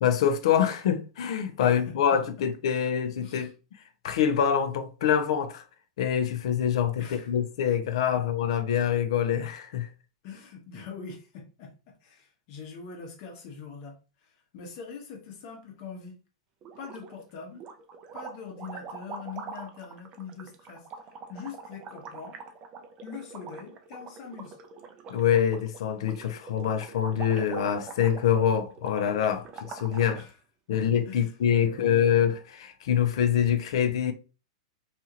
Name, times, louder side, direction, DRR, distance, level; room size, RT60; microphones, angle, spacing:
voice 1, 0.0-3.5 4.0-5.6 6.0-9.9 25.1-30.2 30.7-34.1, left 9 dB, 70° left, 0.5 m, -25 dB
voice 2, 1.6-2.2 3.2-3.5 7.0-7.3 8.1-8.2 10.2-16.2 16.8-17.7 18.1-20.9 21.3-22.4 23.0-24.6 30.1-30.3 30.7-31.3 31.6-32.1, left 5 dB, 50° left, 1.1 m, -43 dB
sound 1, 16.6-17.2 17.6-30.3, right 5 dB, 30° right, 0.5 m, -44 dB
2.7 x 2.4 x 2.9 m
hypercardioid pair, 135°, 3 cm